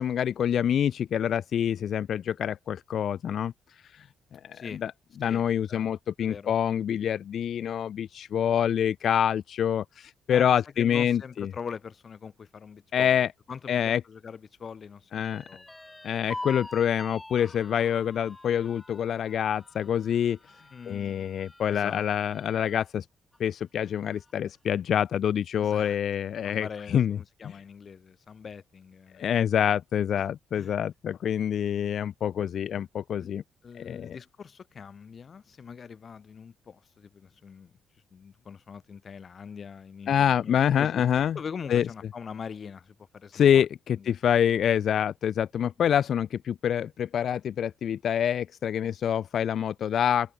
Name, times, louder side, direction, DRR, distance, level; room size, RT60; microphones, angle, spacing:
voice 1, 0.0-4.9 5.2-11.5 12.9-13.3 13.7-14.0 15.1-15.4 16.0-20.4 20.9-23.1 23.4-27.2 27.4-27.6 29.2-33.4 33.7-34.2 40.1-41.4 41.7-41.9 43.3-50.3, left 9 dB, 60° left, 0.4 m, -26 dB
voice 2, 5.2-5.9 6.2-6.5 10.3-15.7 20.7-21.3 21.7-22.3 25.6-26.0 26.4-29.3 30.0-30.3 30.6-30.7 33.2-33.3 33.6-37.7 38.1-41.0 41.3-43.6 43.9-44.1, left 6 dB, 45° left, 2.3 m, -42 dB
sound 1, 15.2-22.9 23.3-23.4 23.8-24.5, left 2 dB, 10° left, 5.5 m, -45 dB
cardioid pair, 90°, 0 cm